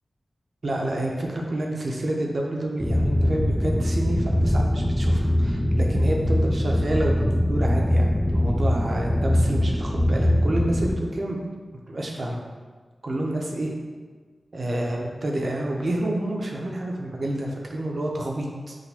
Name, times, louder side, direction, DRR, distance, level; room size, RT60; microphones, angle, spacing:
voice 1, 0.6-11.4 11.9-12.4 13.0-13.7 14.5-18.8, right 1 dB, 65° right, -1 dB, 0.7 m, -28 dB
sound 1, 2.8-11.0, left 1 dB, ahead, 0.3 m, -22 dB
6.1 x 2.5 x 2.8 m, 1.5 s
cardioid pair, 45°, 0 cm